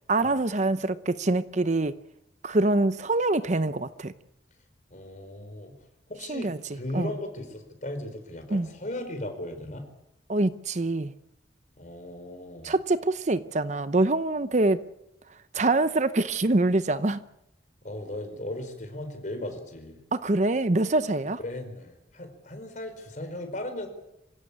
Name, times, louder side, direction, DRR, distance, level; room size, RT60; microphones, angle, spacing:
voice 1, 0.1-1.9 2.4-4.1 6.3-6.6 6.9-7.1 8.5-8.7 10.3-11.1 12.6-14.8 15.5-17.2 20.1-21.4, right 2 dB, 40° right, 0.8 m, -25 dB
voice 2, 4.9-5.7 6.1-9.8 11.8-12.7 17.8-20.0 21.4-23.9, left 1 dB, 45° left, 4.9 m, -37 dB
27.0 x 16.0 x 8.7 m
head